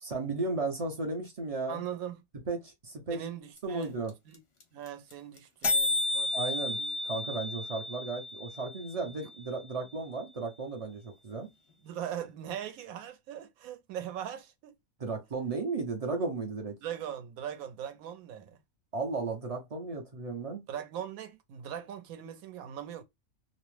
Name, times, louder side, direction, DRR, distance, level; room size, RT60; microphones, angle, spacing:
voice 1, 0.0-1.8 2.5-3.2 3.6-4.1 6.3-11.5 15.0-16.7 18.9-20.6, right 3 dB, 55° right, 0.4 m, -35 dB
voice 2, 1.7-2.2 3.1-4.0 4.3-4.4 4.7-6.7 11.8-14.7 16.8-18.6 20.7-23.0, right 9 dB, 85° right, 1.0 m, -40 dB
sound 1, 3.6-3.7 3.8-3.9 4.1-4.3 4.6-4.7 4.9-5.1 5.4-5.5 5.6-9.6, left 2 dB, 40° left, 0.4 m, -32 dB
2.5 x 2.0 x 3.0 m
omnidirectional pair, 1.4 m